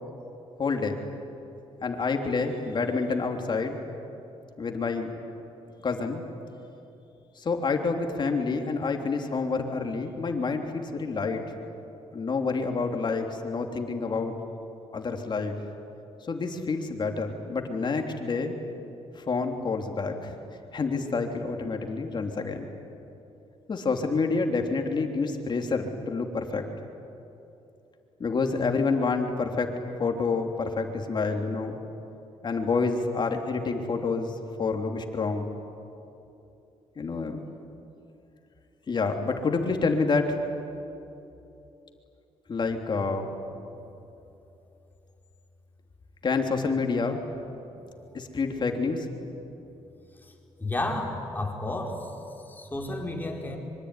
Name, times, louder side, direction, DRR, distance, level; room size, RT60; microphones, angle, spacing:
voice 1, 0.6-1.0 1.8-3.8 4.6-5.2 5.8-6.2 7.4-11.4 12.1-14.3 14.9-15.6 16.3-18.5 19.2-20.4 20.7-22.7 23.7-26.7 28.2-31.8 32.4-35.5 37.0-37.4 38.9-40.4 42.5-43.4 46.2-47.2 48.1-49.1, left 4 dB, 45° left, 4 dB, 3.3 m, -28 dB
voice 2, 50.6-52.1 52.5-53.6, left 2 dB, 15° left, 0 dB, 5.0 m, -31 dB
25.0 x 24.0 x 9.9 m, 2.9 s
cardioid pair, 85°, 11 cm